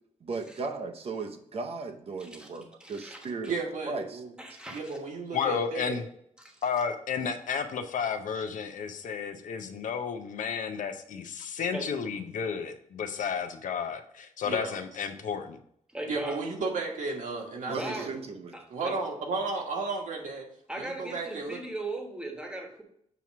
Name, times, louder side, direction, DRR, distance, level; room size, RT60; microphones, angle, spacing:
voice 1, 0.2-3.6 3.9-4.2 17.7-18.6, right 4 dB, 50° right, 4 dB, 0.7 m, -36 dB
voice 2, 2.8-3.5 4.4-4.8 6.4-6.6 11.7-11.9 15.9-16.4 17.7-18.2 18.5-18.9 20.7-22.8, right 2 dB, 5° right, 1 dB, 1.1 m, -38 dB
voice 3, 3.5-4.3 4.7-6.0 14.4-14.8 16.1-18.1 18.7-20.5 20.8-21.6, right 3 dB, 75° right, 0 dB, 1.5 m, -33 dB
voice 4, 5.3-6.0 6.6-15.6, left 6 dB, 80° left, 8 dB, 0.7 m, -32 dB
6.9 x 3.0 x 5.9 m, 0.68 s
wide cardioid pair, 170°, 13 cm